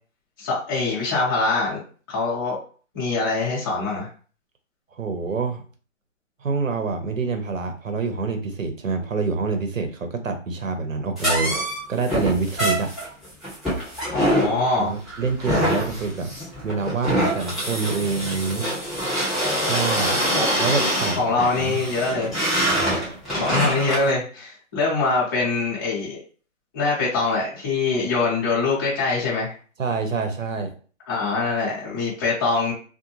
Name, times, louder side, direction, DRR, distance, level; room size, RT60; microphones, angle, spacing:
voice 1, 0.4-1.8 2.1-2.6 2.9-4.1 14.1-15.0 20.3-20.5 21.2-22.3 23.3-26.2 26.7-29.5 31.1-32.7, left 3 dB, 15° left, -7 dB, 0.8 m, -23 dB
voice 2, 5.0-5.6 6.4-13.0 14.8-16.3 16.6-18.7 19.6-20.2 20.6-21.8 29.8-30.7, right 4 dB, 90° right, 6 dB, 0.9 m, -26 dB
sound 1, 11.2-24.1, equal, ahead, 0.3 m, -25 dB
2.6 x 2.1 x 3.0 m, 0.40 s
hypercardioid pair, 160°, 38 cm